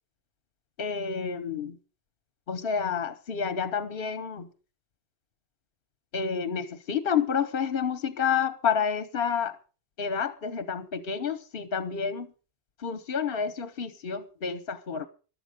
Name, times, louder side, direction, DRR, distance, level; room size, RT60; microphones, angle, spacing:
voice 1, 0.8-1.8 2.5-4.5 6.1-9.6 10.0-12.3 12.8-15.1, left 7 dB, 50° left, 1.2 m, -29 dB
14.5 x 12.0 x 5.2 m
omnidirectional pair, 1.2 m